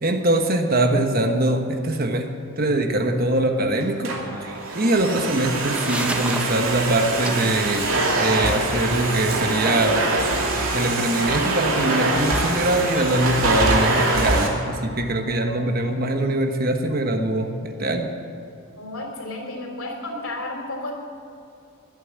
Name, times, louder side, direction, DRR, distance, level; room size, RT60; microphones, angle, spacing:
voice 1, 0.0-2.3 2.6-4.1 4.4-7.8 8.2-10.0 10.7-18.1, right 1 dB, 40° right, 5 dB, 1.3 m, -22 dB
Domestic sounds home sounds, 3.8-14.5, right 2 dB, 70° right, 2.6 m, -23 dB
sound 1, 5.5-14.3, right 1 dB, 5° right, 0.6 m, -36 dB
Percussion / Church bell, 12.9-16.6, equal, 45° left, 2.5 m, -42 dB
voice 2, 18.8-20.9, left 2 dB, 70° left, 2 dB, 3.4 m, -32 dB
21.5 x 8.9 x 7.5 m, 2.5 s
head